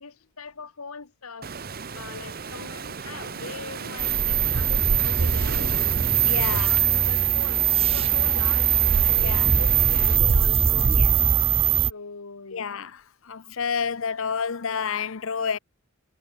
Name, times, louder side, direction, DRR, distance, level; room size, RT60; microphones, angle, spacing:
voice 1, 0.0-1.5 1.9-5.9 6.5-8.8 9.0-10.9 11.9-12.6, left 4 dB, 85° left, 1.4 m, -41 dB
Waves surf, 1.4-10.2, right 5 dB, 45° right, 1.0 m, -35 dB
sound 1, 4.0-11.9, right 8 dB, 25° right, 0.3 m, -21 dB
voice 2, 6.2-6.8 9.2-9.5 10.9-11.2 12.5-15.6, left 6 dB, 65° left, 0.7 m, -29 dB
head